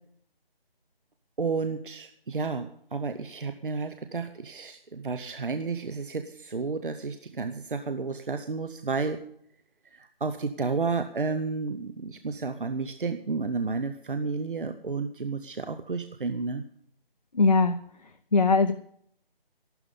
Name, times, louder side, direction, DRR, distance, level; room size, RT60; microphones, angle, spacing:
voice 1, 1.4-9.2 9.9-16.6, right 4 dB, 60° right, 9 dB, 0.9 m, -31 dB
voice 2, 17.3-17.8 18.3-18.7, left 3 dB, 45° left, 7 dB, 0.7 m, -20 dB
14.0 x 12.0 x 5.4 m, 0.66 s
figure-of-eight pair, 175°, 30 cm